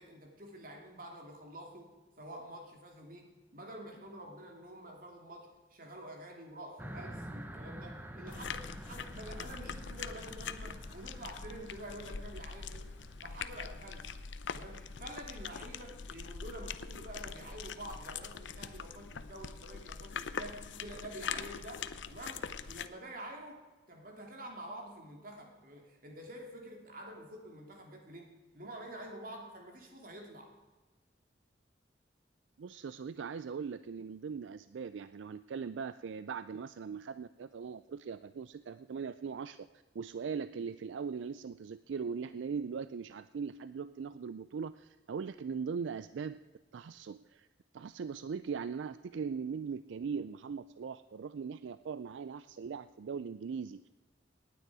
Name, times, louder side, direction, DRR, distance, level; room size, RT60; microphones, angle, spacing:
voice 1, 0.0-1.9 2.2-12.9 13.2-14.1 14.5-23.6 23.9-30.5, right 1 dB, 50° right, 2 dB, 2.7 m, -48 dB
sound 1, 6.8-14.3, right 1 dB, 10° right, 0.9 m, -49 dB
sound 2, 8.3-22.9, left 6 dB, 80° left, 0.7 m, -43 dB
voice 2, 32.6-39.7 39.9-46.4 46.7-47.5 47.7-53.8, right 6 dB, 80° right, 14 dB, 0.4 m, -40 dB
18.5 x 9.4 x 4.8 m, 1.2 s
head